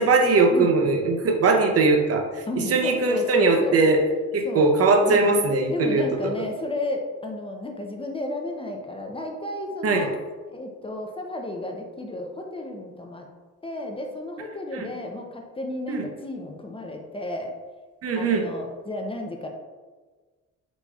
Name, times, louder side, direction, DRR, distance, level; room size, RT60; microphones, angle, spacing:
voice 1, 0.0-4.0 4.3-6.0 9.8-10.1 14.7-14.9 15.9-16.0 18.0-18.4, right 3 dB, 50° right, 3 dB, 0.7 m, -20 dB
voice 2, 2.5-3.8 4.4-4.7 5.0-5.3 5.7-10.1 10.5-13.3 13.6-17.5 18.2-19.5, left 1 dB, 20° left, 2 dB, 0.5 m, -33 dB
4.6 x 4.1 x 2.3 m, 1.4 s
cardioid pair, 90°, 30 cm